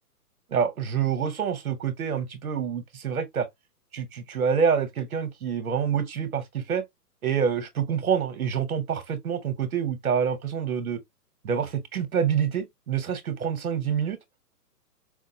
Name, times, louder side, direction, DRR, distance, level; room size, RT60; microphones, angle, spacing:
voice 1, 0.5-3.5 3.9-6.8 7.2-11.0 11.4-14.2, right 7 dB, 60° right, 0.9 m, -27 dB
4.8 x 2.2 x 2.7 m
hypercardioid pair, 180°, 49 cm